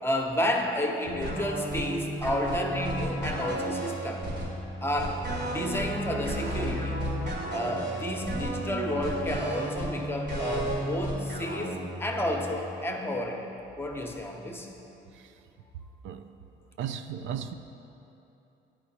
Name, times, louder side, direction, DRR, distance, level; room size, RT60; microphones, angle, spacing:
voice 1, 0.0-4.3 4.8-5.2 5.5-7.0 7.5-13.4 13.8-14.7, left 1 dB, 10° left, 2 dB, 0.9 m, -31 dB
sound 1, 1.0-12.5, right 1 dB, 60° right, 1.6 m, -33 dB
voice 2, 16.8-17.5, right 8 dB, 75° right, 8 dB, 0.4 m, -35 dB
10.0 x 5.0 x 4.2 m, 2.9 s
cardioid pair, 90°, 20 cm